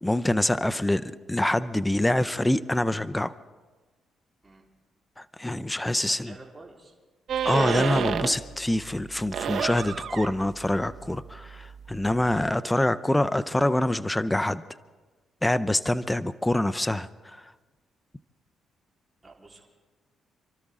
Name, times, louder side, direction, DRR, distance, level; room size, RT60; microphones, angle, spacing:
voice 1, 0.0-3.3 5.2-6.3 7.4-14.6 15.4-17.4, left 1 dB, 10° left, 15 dB, 0.5 m, -25 dB
voice 2, 6.0-6.9 19.2-19.7, right 2 dB, 20° right, -3 dB, 3.8 m, -49 dB
sound 1, 7.3-8.5 8.9-12.5, right 7 dB, 65° right, 1.0 m, -31 dB
28.5 x 13.0 x 3.7 m, 1.3 s
cardioid pair, 90°, 0 cm